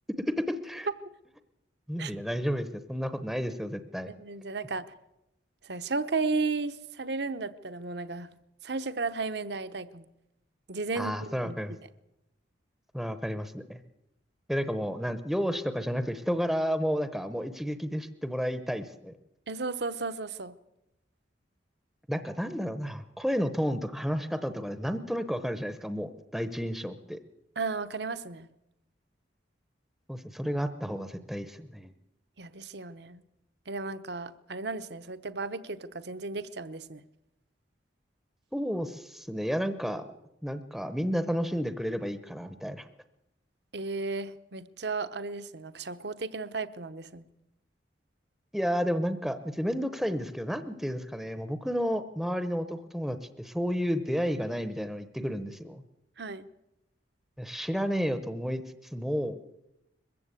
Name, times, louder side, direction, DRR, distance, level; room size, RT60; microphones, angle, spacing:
voice 1, 0.3-0.9 1.9-4.1 10.9-11.7 12.9-13.8 14.5-19.1 22.1-27.2 30.1-31.9 38.5-40.1 40.4-42.9 48.5-55.8 57.4-58.6 58.9-59.4, equal, ahead, 11 dB, 0.8 m, -31 dB
voice 2, 4.1-4.8 5.6-8.3 8.6-10.1 10.7-11.6 19.5-20.5 27.6-28.5 32.4-33.2 33.7-37.0 43.7-47.2 56.2-56.5, right 3 dB, 60° right, 12 dB, 0.9 m, -34 dB
21.5 x 15.0 x 8.2 m, 0.90 s
head